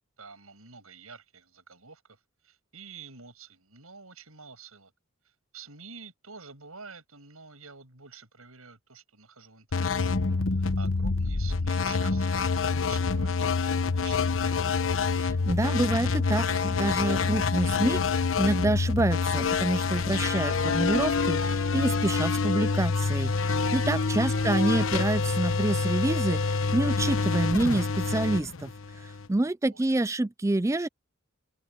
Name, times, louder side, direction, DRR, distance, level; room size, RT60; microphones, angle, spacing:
voice 1, 0.2-4.9 5.2-10.1 10.5-14.7 24.3-24.8 29.6-30.0, right 5 dB, 90° right, 7.4 m, -48 dB
sound 1, 9.7-29.3, left 4 dB, 65° left, 1.0 m, -27 dB
voice 2, 15.2-28.7 29.3-30.9, right 2 dB, 15° right, 0.4 m, -27 dB
head